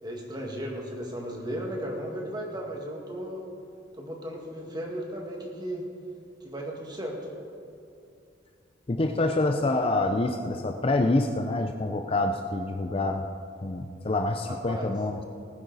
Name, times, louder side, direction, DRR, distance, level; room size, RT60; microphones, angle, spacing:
voice 1, 0.0-3.5 4.0-5.9 6.4-7.2 14.5-14.9, equal, 20° right, 0 dB, 1.9 m, -35 dB
voice 2, 8.9-13.2 13.6-15.2, left 2 dB, 30° left, 5 dB, 0.5 m, -26 dB
19.0 x 9.7 x 4.1 m, 2.4 s
head